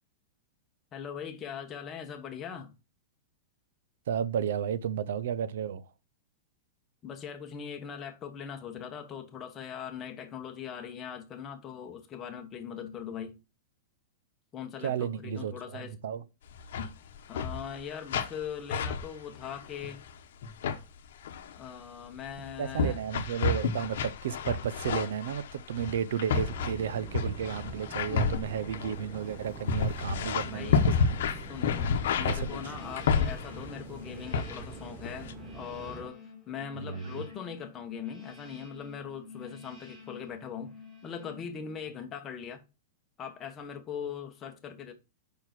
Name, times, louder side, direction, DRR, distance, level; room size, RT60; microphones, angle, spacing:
voice 1, 0.9-2.7 7.0-13.4 14.5-15.9 17.3-20.0 21.5-23.0 30.4-30.9 31.5-36.2 36.5-40.7 41.0-42.6 43.2-44.9, left 8 dB, 20° left, 1.1 m, -40 dB
voice 2, 4.1-5.8 14.8-16.2 22.6-31.4 32.2-32.5 36.8-37.2, right 8 dB, 80° right, 0.6 m, -33 dB
sound 1, 16.5-16.9 17.1-17.8 18.1-18.4 18.7-20.1 20.4-20.8 21.2-21.6 22.2-33.8 34.3-34.7 35.0-35.3, left 5 dB, 75° left, 0.9 m, -30 dB
sound 2, 26.4-36.1, right 6 dB, 25° right, 0.7 m, -46 dB
sound 3, 32.2-42.1, left 4 dB, 10° right, 2.4 m, -49 dB
5.2 x 4.6 x 5.9 m
supercardioid pair, 160°, 0 cm